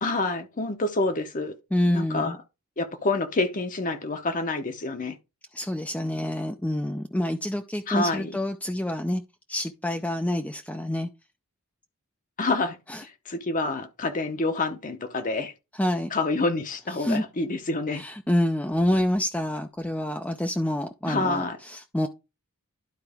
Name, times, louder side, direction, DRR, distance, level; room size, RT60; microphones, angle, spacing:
voice 1, 0.0-1.5 1.9-2.4 2.8-5.2 7.9-8.3 12.4-12.8 13.0-15.5 16.1-18.0 21.1-21.6, left 2 dB, 35° left, 0.8 m, -27 dB
voice 2, 1.7-2.4 5.5-9.2 9.5-11.1 12.9-13.0 15.7-16.1 17.0-17.2 17.9-22.1, left 1 dB, 5° left, 0.4 m, -27 dB
11.5 x 4.5 x 3.5 m
head